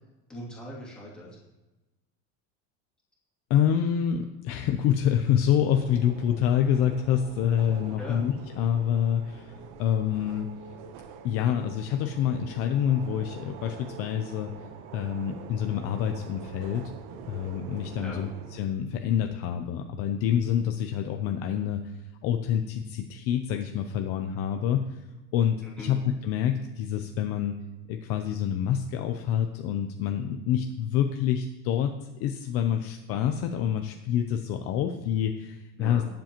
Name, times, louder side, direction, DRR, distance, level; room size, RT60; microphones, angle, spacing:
voice 1, 0.3-1.4 8.0-8.2 18.0-18.2 25.6-26.0 35.8-36.1, equal, 5° left, -6 dB, 2.6 m, -40 dB
voice 2, 3.5-10.5 11.2-14.5 14.9-16.9 17.3-18.3 18.6-25.0 25.3-27.6 27.9-36.0, left 9 dB, 45° left, 5 dB, 0.6 m, -27 dB
sound 1, 5.7-18.6, right 6 dB, 70° right, 1.0 m, -45 dB
18.5 x 7.5 x 3.0 m, 1.1 s
cardioid pair, 180°, 34 cm